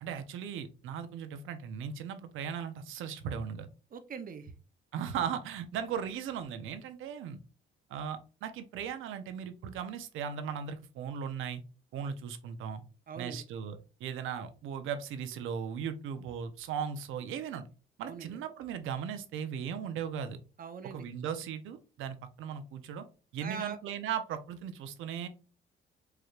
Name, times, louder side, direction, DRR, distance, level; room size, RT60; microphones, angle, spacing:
voice 1, 0.0-3.7 4.9-7.4 7.9-11.6 11.9-12.8 13.1-17.6 18.0-20.4 20.8-23.0 23.3-25.3, right 7 dB, 85° right, 10 dB, 0.7 m, -37 dB
voice 2, 3.9-4.5 13.1-13.4 18.0-18.4 20.6-21.0 23.4-23.8, right 6 dB, 45° right, 9 dB, 0.7 m, -42 dB
4.8 x 3.1 x 2.4 m, 0.34 s
cardioid pair, 90°, 20 cm